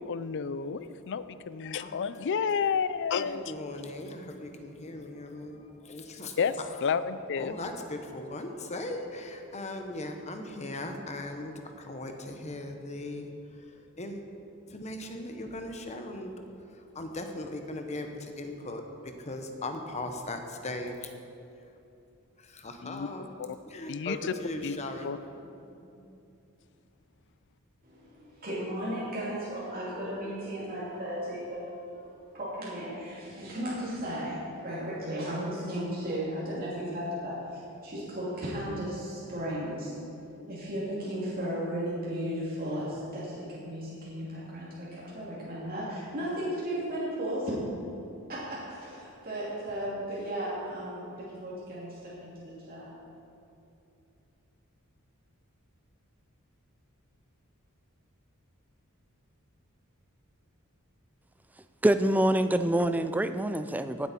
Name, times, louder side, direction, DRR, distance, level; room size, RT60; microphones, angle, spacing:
voice 1, 0.0-3.5 6.4-7.6 22.8-23.1 23.4-23.5 23.9-24.3 24.6-24.7 25.0-25.2, left 6 dB, 55° left, 14 dB, 0.4 m, -30 dB
voice 2, 3.2-6.4 7.4-13.3 13.7-14.2 14.7-16.3 16.9-21.1 22.4-23.3 23.7-25.1 26.0-26.1, left 2 dB, 30° left, 5 dB, 1.0 m, -38 dB
voice 3, 27.8-32.1 32.3-39.9 40.4-47.6 48.3-52.9, equal, 45° right, -8 dB, 2.6 m, -35 dB
voice 4, 61.8-64.1, right 1 dB, 5° right, 11 dB, 0.3 m, -25 dB
17.5 x 8.1 x 4.3 m, 2.7 s
head